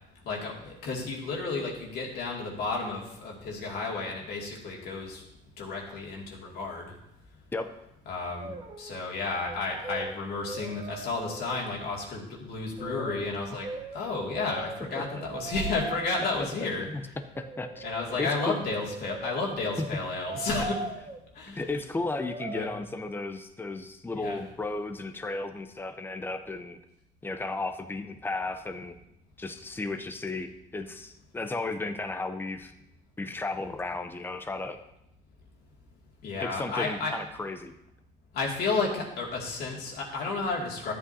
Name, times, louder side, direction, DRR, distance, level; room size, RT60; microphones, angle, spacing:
voice 1, 0.2-5.2 5.6-6.9 8.1-8.5 8.8-13.7 13.9-16.9 17.8-20.9 21.4-21.6 22.5-22.7 24.1-24.4 36.2-37.1 38.3-40.9, left 3 dB, 70° left, -1 dB, 2.3 m, -32 dB
Brass instrument, 8.3-9.0 9.3-11.8 12.8-16.0 17.3-21.2 22.2-22.6, right 3 dB, 30° right, 1.0 m, -40 dB
voice 2, 15.0-15.3 16.9-17.0 17.4-17.8 18.2-18.6 21.5-26.8 27.2-28.9 29.4-30.5 30.7-32.7 33.2-34.8 36.4-37.7, left 3 dB, 10° left, 8 dB, 0.7 m, -34 dB
12.5 x 8.3 x 2.8 m, 0.84 s
cardioid pair, 110°, 17 cm